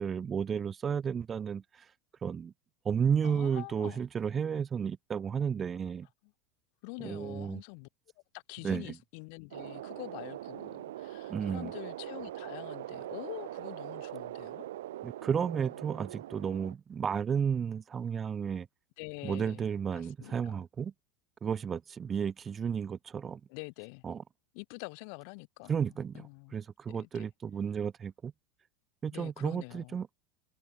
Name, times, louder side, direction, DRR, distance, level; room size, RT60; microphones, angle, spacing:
voice 1, 0.0-1.9 2.2-2.5 2.8-6.1 7.0-7.6 8.6-8.9 11.3-11.7 15.0-18.7 19.2-20.9 21.4-23.4 24.0-24.2 25.7-26.3 26.5-28.3 29.0-30.1, right 7 dB, 25° right, 0.5 m, -32 dB
voice 2, 3.2-4.0 6.2-6.3 6.8-7.9 8.3-14.7 19.0-19.7 19.9-20.6 23.5-24.0 24.5-26.6 26.9-27.3 29.1-30.0, left 40 dB or more, 60° left, 2.1 m, -46 dB
sound 1, 9.5-16.7, right 14 dB, 90° right, 1.6 m, -42 dB
supercardioid pair, 135°, 0 cm